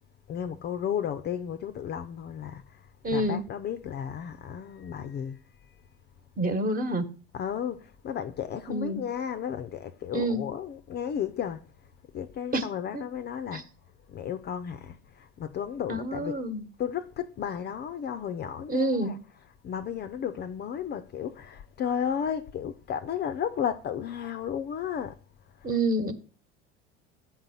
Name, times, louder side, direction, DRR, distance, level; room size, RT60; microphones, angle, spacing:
voice 1, 0.3-5.8 7.3-13.7 14.1-16.4 16.8-25.2 25.5-25.8, left 8 dB, 35° left, 0.5 m, -34 dB
voice 2, 3.0-3.4 6.4-7.1 8.7-9.0 10.1-10.4 12.5-12.6 13.5-13.6 15.9-16.6 18.7-19.1 25.6-26.1, right 1 dB, 30° right, 1.2 m, -27 dB
7.9 x 3.9 x 5.7 m
supercardioid pair, 95°, 30 cm